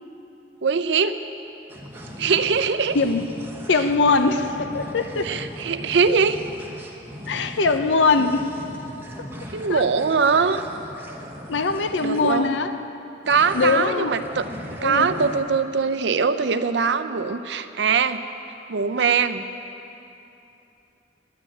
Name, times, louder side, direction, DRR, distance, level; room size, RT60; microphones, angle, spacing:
voice 1, 0.6-1.2 2.2-3.0 5.2-6.4 9.5-10.6 12.0-12.5 13.3-14.4 14.8-18.2 18.7-19.4, right 5 dB, 70° right, 11 dB, 0.5 m, -22 dB
sound 1, 1.7-12.5 13.2-15.4, equal, 10° right, 1.2 m, -38 dB
voice 2, 3.7-5.3 7.3-8.5 9.7-9.8 11.5-12.7 13.5-14.1 14.8-15.1, left 4 dB, 80° left, 9 dB, 0.6 m, -21 dB
10.5 x 9.2 x 8.8 m, 2.9 s
head